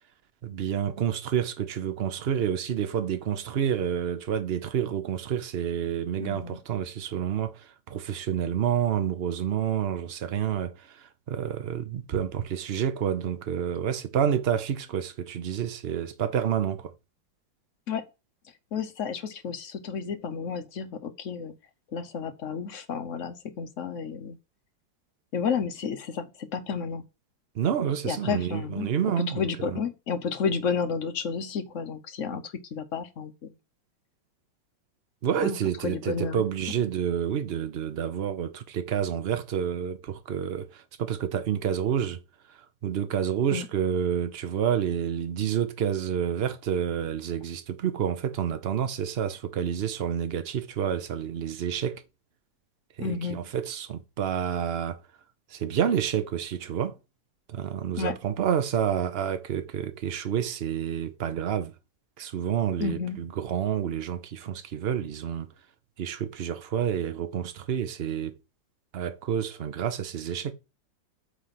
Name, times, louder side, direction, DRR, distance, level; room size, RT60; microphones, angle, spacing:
voice 1, 0.4-16.9 27.5-29.8 35.2-42.2 42.5-52.0 53.0-55.0 55.5-57.0 57.5-61.7 62.2-65.5 66.0-68.4 68.9-70.5, right 9 dB, 65° right, 0.6 m, -29 dB
voice 2, 6.2-6.6 17.9-18.0 18.7-21.5 21.9-24.4 25.3-27.0 28.0-28.9 29.4-33.5 35.4-35.6 35.8-36.5 43.5-43.6 53.0-53.4 58.0-58.2 62.8-63.2, left 6 dB, 60° left, 0.9 m, -31 dB
8.4 x 3.3 x 5.7 m
omnidirectional pair, 2.0 m